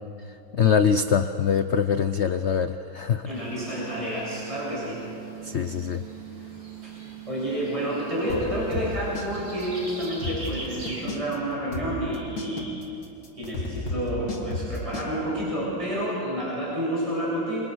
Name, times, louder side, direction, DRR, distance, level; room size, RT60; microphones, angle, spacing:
voice 1, 0.2-3.4 5.4-6.0, left 7 dB, 75° left, 10 dB, 0.6 m, -24 dB
voice 2, 3.3-5.0 6.8-7.0 7.3-12.8 13.3-17.6, equal, 15° right, -6 dB, 7.4 m, -29 dB
sound 1, 3.3-11.2, right 6 dB, 90° right, 4.4 m, -40 dB
sound 2, 8.3-9.3 9.6-9.7 10.0-11.3 11.7-15.1, left 3 dB, 90° left, 3.7 m, -32 dB
29.0 x 25.5 x 6.3 m, 2.7 s
omnidirectional pair, 2.1 m